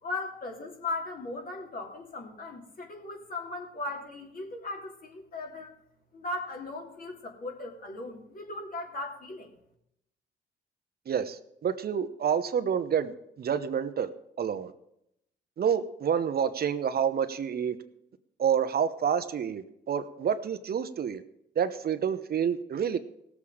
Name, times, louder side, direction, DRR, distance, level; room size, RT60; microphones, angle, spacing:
voice 1, 0.0-5.7 6.1-9.5, left 2 dB, 45° left, 1 dB, 3.0 m, -38 dB
voice 2, 11.1-14.1 14.4-14.7 15.6-17.8 18.4-21.2 21.6-23.0, right 8 dB, 50° right, 10 dB, 0.9 m, -28 dB
17.5 x 7.3 x 5.0 m, 0.79 s
cardioid pair, 90°, 20 cm